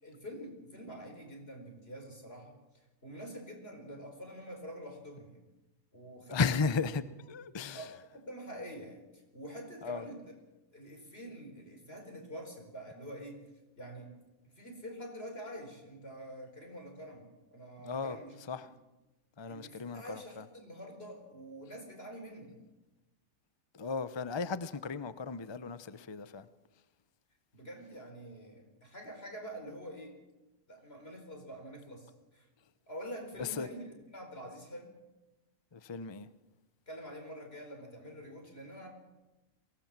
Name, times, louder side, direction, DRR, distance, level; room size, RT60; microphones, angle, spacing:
voice 1, 0.0-2.5 3.0-5.4 5.9-6.8 7.7-10.3 10.7-13.4 13.8-14.1 14.5-18.3 19.5-22.5 27.5-30.2 30.7-32.5 32.9-35.0 36.9-38.9, equal, 45° left, 4.9 m, -46 dB
voice 2, 6.3-7.9 9.8-10.0 17.8-18.2 18.5-18.7 19.4-20.4 23.7-26.5 33.4-33.7 35.7-36.3, left 5 dB, 25° left, 0.6 m, -35 dB
23.0 x 18.0 x 7.4 m
omnidirectional pair, 1.4 m